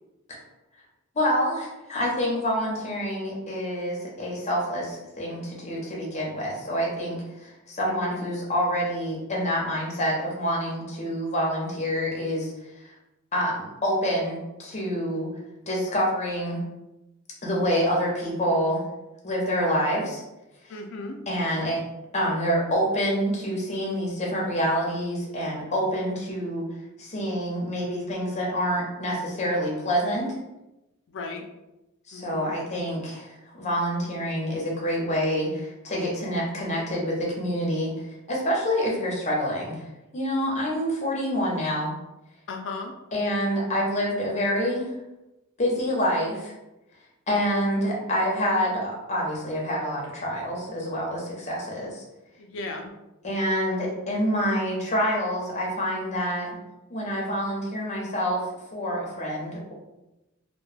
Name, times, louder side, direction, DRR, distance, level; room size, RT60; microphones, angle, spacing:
voice 1, 1.1-12.5 13.3-15.3 15.7-16.6 17.4-18.8 19.2-20.2 21.3-21.8 22.1-26.7 27.0-30.3 32.1-33.3 33.6-37.9 38.3-39.9 40.1-41.9 43.1-44.9 45.6-46.5 47.3-52.0 53.2-56.6 56.9-58.4 58.7-59.7, equal, 35° left, -3 dB, 0.7 m, -27 dB
voice 2, 7.9-8.2 20.7-21.2 31.1-31.4 32.1-32.5 42.5-42.9 52.4-52.9, left 3 dB, 60° left, 4 dB, 0.4 m, -36 dB
2.2 x 2.2 x 3.2 m, 0.97 s
head